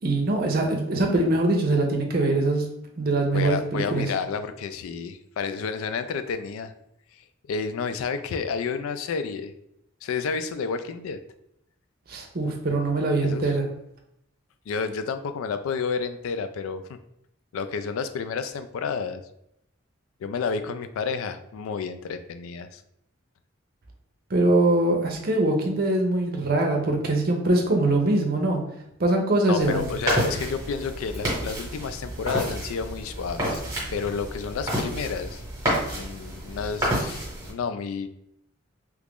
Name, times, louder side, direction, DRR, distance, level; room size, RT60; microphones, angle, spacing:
voice 1, 0.0-2.6 3.0-4.0 12.1-13.6 24.3-28.6 29.0-29.9, right 2 dB, 45° right, 2 dB, 0.6 m, -23 dB
voice 2, 3.3-6.7 7.5-9.5 10.0-11.2 13.2-13.5 14.7-17.0 17.5-19.2 20.2-22.8 29.5-33.6 33.9-35.4 35.9-38.1, left 5 dB, 90° left, 10 dB, 0.3 m, -30 dB
sound 1, 29.6-37.5, equal, 15° right, 1.2 m, -30 dB
3.0 x 2.4 x 3.5 m, 0.78 s
head